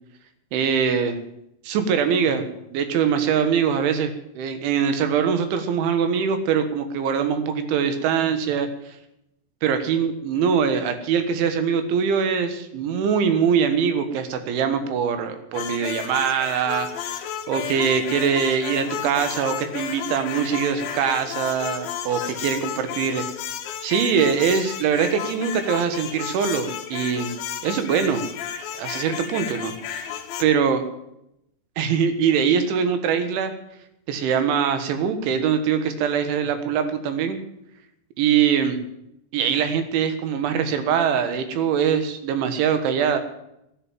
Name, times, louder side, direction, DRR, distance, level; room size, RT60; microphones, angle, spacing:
voice 1, 0.5-1.2 1.7-4.1 4.4-9.0 9.6-23.2 23.8-27.3 27.6-28.2 28.7-30.1 30.4-30.8 31.8-33.5 34.1-37.4 38.2-38.8 39.3-43.2, right 7 dB, 90° right, 9 dB, 3.9 m, -23 dB
sound 1, 15.5-30.4, left 9 dB, 65° left, 2.7 m, -32 dB
12.5 x 9.2 x 9.1 m, 0.80 s
omnidirectional pair, 5.2 m